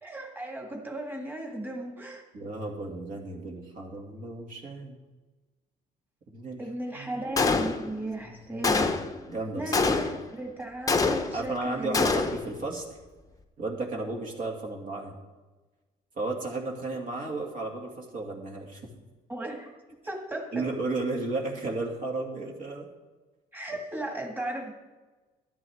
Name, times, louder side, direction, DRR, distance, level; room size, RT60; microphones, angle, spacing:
voice 1, 0.0-2.2 6.6-8.9 9.5-12.2 19.3-19.7 20.0-20.6 23.5-24.7, right 1 dB, 10° right, 1 dB, 2.0 m, -36 dB
voice 2, 2.3-5.0 6.3-6.6 6.9-7.1 8.2-8.6 9.3-9.9 11.3-12.9 13.6-15.1 16.2-18.8 20.5-22.9, right 2 dB, 50° right, 0 dB, 2.3 m, -34 dB
Gunshot gunfire, 7.4-8.1 8.6-9.2 9.7-10.3 10.9-11.5 11.9-12.5, left 4 dB, 20° left, 0.8 m, -25 dB
12.5 x 11.0 x 3.6 m, 1.2 s
cardioid pair, 110°, 17 cm